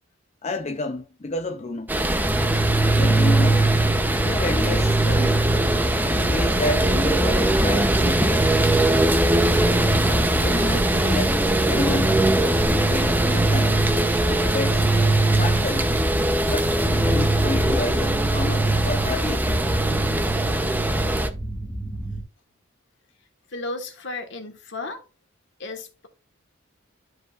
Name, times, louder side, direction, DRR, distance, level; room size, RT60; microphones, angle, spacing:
voice 1, 0.4-1.9 2.9-3.7 4.2-5.4 6.1-8.5 10.4-12.2 12.7-13.9 14.3-14.9 15.4-15.9 16.4-19.5, left 2 dB, 35° left, 0.5 m, -30 dB
sound 1, 1.9-21.3, right 1 dB, 10° right, 0.7 m, -22 dB
sound 2, 2.2-22.2, right 2 dB, 10° left, 1.6 m, -24 dB
voice 2, 23.5-25.0 25.6-26.1, left 2 dB, 65° left, 1.5 m, -34 dB
12.5 x 5.3 x 2.4 m
head